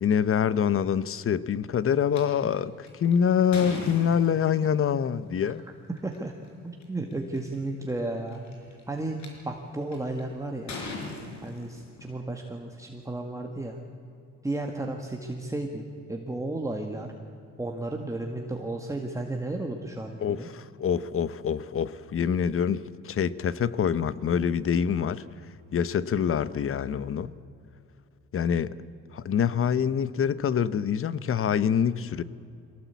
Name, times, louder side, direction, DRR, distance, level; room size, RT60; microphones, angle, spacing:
voice 1, 0.0-5.6 20.2-25.2 25.7-27.3 28.3-28.7 29.1-32.2, left 8 dB, 45° left, 17 dB, 0.8 m, -25 dB
sound 1, 2.1-2.2 2.8-4.7 6.0-6.2 6.8-6.9 7.1-7.6 8.3-9.3 9.9-10.2 10.7-12.1, left 3 dB, 65° left, 5.1 m, -38 dB
voice 2, 6.0-6.3 6.6-8.5 8.9-10.8 11.4-13.8 14.4-17.1 17.6-20.5, right 2 dB, 10° right, 2 dB, 1.8 m, -33 dB
23.0 x 17.5 x 8.3 m, 2.6 s
cardioid pair, 90°, 30 cm